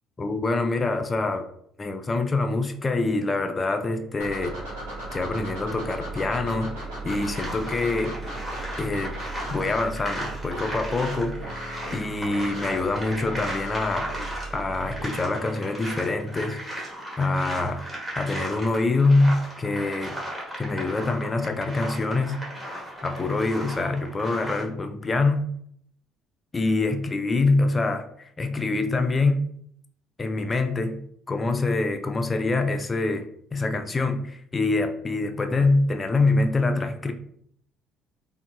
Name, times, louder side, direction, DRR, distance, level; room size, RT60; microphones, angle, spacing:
voice 1, 0.2-1.5 1.8-4.6 5.1-6.7 7.0-8.2 8.8-9.1 9.5-11.5 11.9-14.1 14.5-16.6 17.2-17.8 18.2-20.2 20.6-22.4 23.0-25.5 26.5-29.5 30.2-37.1, left 3 dB, 30° left, 7 dB, 0.4 m, -25 dB
sound 1, 4.2-15.0, right 1 dB, 85° right, 1.0 m, -36 dB
sound 2, 7.1-24.6, right 1 dB, 15° right, 1.3 m, -36 dB
3.8 x 2.1 x 2.3 m, 0.67 s
supercardioid pair, 65°, 0 cm